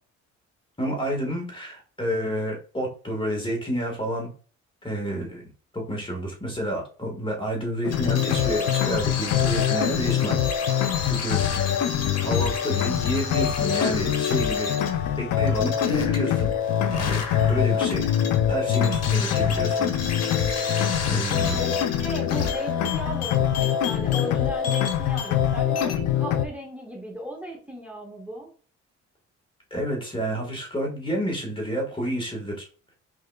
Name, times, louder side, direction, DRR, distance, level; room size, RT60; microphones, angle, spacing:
voice 1, 0.8-4.3 4.8-10.4 11.1-11.4 12.2-14.7 15.2-16.5 16.9-17.2 17.5-18.1 18.5-19.9 21.1-21.7 29.7-32.7, equal, 15° left, 0 dB, 1.5 m, -29 dB
sound 1, 7.8-26.5, left 9 dB, 75° left, 0.6 m, -24 dB
sound 2, 7.9-25.5 25.8-26.0, left 5 dB, 55° left, 1.0 m, -34 dB
voice 2, 21.6-28.5, equal, 5° right, -1 dB, 1.4 m, -36 dB
4.8 x 3.7 x 2.3 m, 0.39 s
cardioid pair, 90°, 30 cm